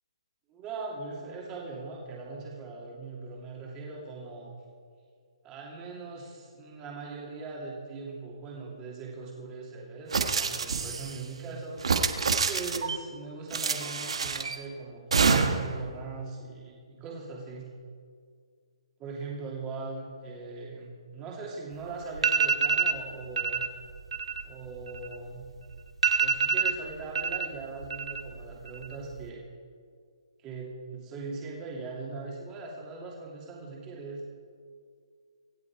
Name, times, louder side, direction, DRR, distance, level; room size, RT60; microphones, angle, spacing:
voice 1, 0.5-4.6 5.4-11.8 12.5-17.7 19.0-23.7 24.4-25.5 26.1-29.4 30.4-34.2, right 3 dB, 15° right, -3 dB, 2.6 m, -40 dB
sound 1, 10.1-11.2 11.8-13.0 13.5-14.6 15.1-15.8, right 5 dB, 70° right, 1.4 m, -27 dB
sound 2, 21.7-21.8 22.1-23.0 23.4-23.7 24.0-25.4 25.7-25.8 26.0-27.5 27.8-28.4 28.7-29.2, right 5 dB, 85° right, 1.8 m, -26 dB
25.5 x 8.6 x 4.8 m, 2.1 s
hypercardioid pair, 170°, 3 cm